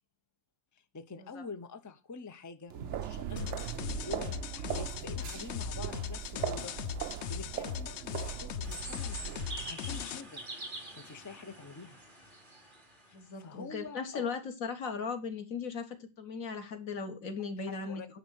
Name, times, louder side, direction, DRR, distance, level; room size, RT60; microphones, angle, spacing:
voice 1, 0.7-6.7 7.3-10.4 11.0-12.0 13.1-14.4 17.7-18.1, left 4 dB, 20° left, 9 dB, 0.6 m, -47 dB
sound 1, 2.7-9.7, right 10 dB, 65° right, 0.8 m, -39 dB
sound 2, 3.4-10.2, left 9 dB, 65° left, 0.8 m, -39 dB
sound 3, 8.6-13.2, right 2 dB, 35° right, 3.0 m, -45 dB
voice 2, 13.1-18.0, left 5 dB, 85° left, 7 dB, 1.8 m, -38 dB
10.0 x 4.1 x 6.3 m, 0.30 s
omnidirectional pair, 1.4 m